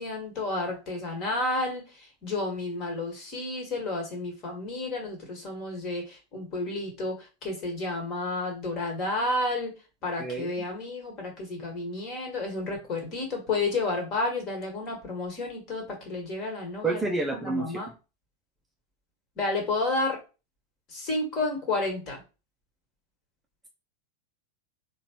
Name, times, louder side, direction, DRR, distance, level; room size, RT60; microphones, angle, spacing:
voice 1, 0.0-9.7 10.0-17.0 17.4-17.9 19.4-20.2 20.9-22.2, left 2 dB, 35° left, 1 dB, 1.6 m, -31 dB
voice 2, 10.2-10.7 16.8-17.8, right 3 dB, 10° right, 1 dB, 0.5 m, -29 dB
3.9 x 2.2 x 2.9 m, 0.30 s
figure-of-eight pair, 90°, 0 cm